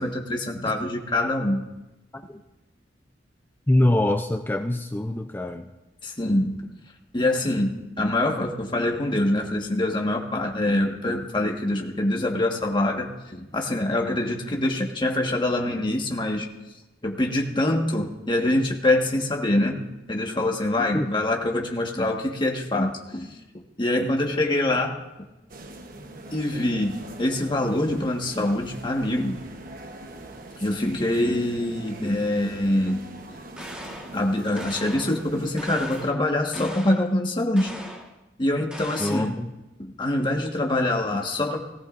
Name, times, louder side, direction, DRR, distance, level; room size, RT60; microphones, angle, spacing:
voice 1, 0.0-1.6 6.0-6.6 7.1-7.7 8.0-16.5 17.0-19.8 20.1-23.3 23.8-25.0 26.3-29.4 30.6-33.0 34.1-37.7 38.4-39.3 39.8-41.6, left 1 dB, 25° left, 1 dB, 1.6 m, -24 dB
voice 2, 3.7-5.7 20.9-21.1 39.0-39.5, left 1 dB, 10° left, 6 dB, 0.5 m, -24 dB
sound 1, 25.5-36.1, right 1 dB, 50° right, 1.1 m, -42 dB
sound 2, 33.6-34.2 34.6-35.2 35.6-36.2 36.5-37.1 37.6-38.1 38.7-39.4, equal, 5° right, 1.5 m, -39 dB
18.5 x 17.0 x 2.6 m, 1.0 s
head